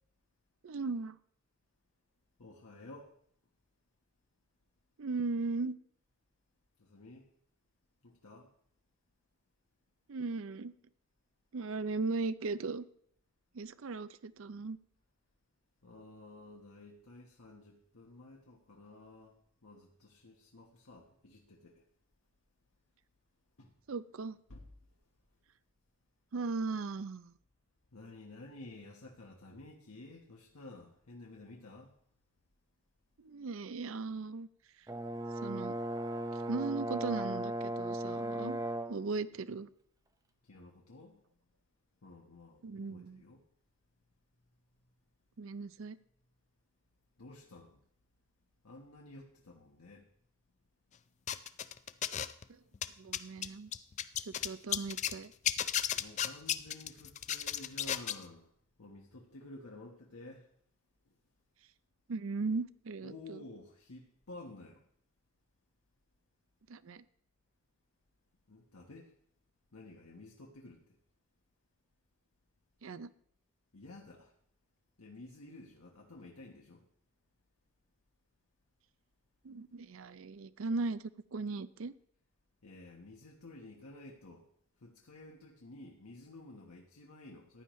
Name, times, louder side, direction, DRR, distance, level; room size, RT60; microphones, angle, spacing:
voice 1, 0.6-1.2 5.0-5.8 10.1-10.7 11.5-12.8 13.5-14.8 23.9-24.4 26.3-27.3 33.2-34.5 35.4-35.8 36.5-38.6 38.9-39.7 42.6-43.2 45.4-46.0 52.5-52.6 53.0-53.7 54.3-55.3 62.1-63.4 66.7-67.0 72.8-73.1 79.4-81.9, right 3 dB, 65° right, 16 dB, 0.5 m, -37 dB
voice 2, 2.4-3.1 6.8-7.3 8.0-8.5 15.8-21.8 23.6-23.7 24.5-24.7 27.9-31.9 40.4-41.2 42.0-43.4 47.2-47.8 48.6-50.1 56.0-58.5 58.8-60.5 61.1-61.2 63.0-64.8 68.5-69.1 69.7-71.0 73.7-74.3 75.0-76.8 82.6-84.4 84.8-87.6, left 2 dB, 85° left, -1 dB, 1.2 m, -52 dB
Brass instrument, 34.9-39.0, right 1 dB, 15° right, 0.6 m, -37 dB
sound 1, 51.3-52.4 52.7-55.2 55.5-58.2, left 10 dB, 30° left, 0.3 m, -34 dB
15.0 x 10.5 x 3.1 m, 0.65 s
head